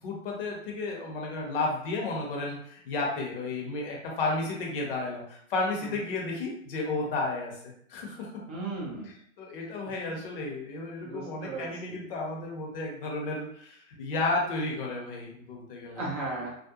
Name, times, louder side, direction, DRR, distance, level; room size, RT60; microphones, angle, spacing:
voice 1, 0.0-7.5 7.9-8.3 9.4-16.0, left 3 dB, 40° left, -1 dB, 0.8 m, -32 dB
voice 2, 8.5-9.1 11.0-12.0 16.0-16.7, right 3 dB, 30° right, -4 dB, 0.5 m, -36 dB
2.4 x 2.1 x 2.8 m, 0.65 s
hypercardioid pair, 120°, 41 cm